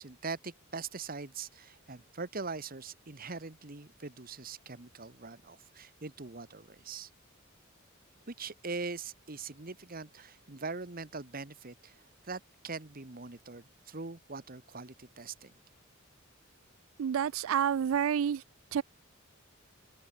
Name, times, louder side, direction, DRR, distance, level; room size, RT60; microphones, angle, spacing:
voice 1, 0.0-7.1 8.3-15.5, right 4 dB, 45° right, 1.4 m, -42 dB
voice 2, 17.0-18.4 18.7-18.8, right 8 dB, 75° right, 0.3 m, -28 dB
open air
head